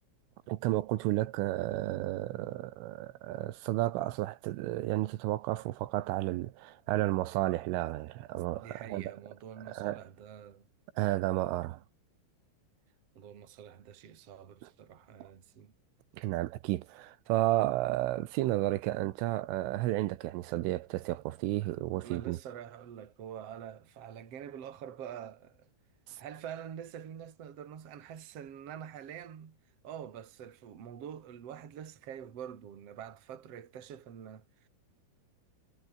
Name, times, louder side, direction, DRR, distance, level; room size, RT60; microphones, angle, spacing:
voice 1, 0.5-9.2 9.7-10.0 11.0-11.8 15.2-15.3 16.2-22.4 26.1-26.2, right 16 dB, 80° right, 3.6 m, -32 dB
voice 2, 8.6-10.7 13.1-15.7 22.0-25.7 26.2-29.6 29.8-34.7, right 9 dB, 40° right, 2.8 m, -46 dB
omnidirectional pair, 5.7 m